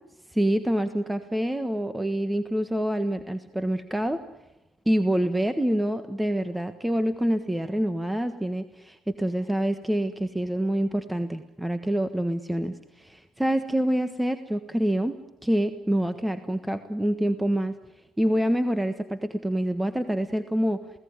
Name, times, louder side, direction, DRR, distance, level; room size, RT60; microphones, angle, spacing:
voice 1, 0.3-4.2 4.8-17.7 18.2-20.8, right 1 dB, 10° right, 10 dB, 1.4 m, -26 dB
28.0 x 17.5 x 9.8 m, 0.95 s
supercardioid pair, 75°, 0 cm